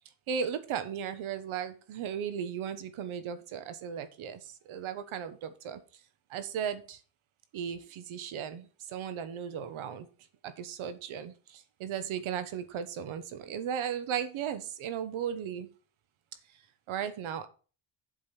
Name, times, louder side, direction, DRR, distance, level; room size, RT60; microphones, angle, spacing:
voice 1, 0.3-5.8 6.3-7.0 7.5-10.1 10.4-15.7 16.9-17.5, right 8 dB, 75° right, 11 dB, 1.2 m, -36 dB
7.5 x 5.1 x 5.8 m, 0.36 s
cardioid pair, 150°, 49 cm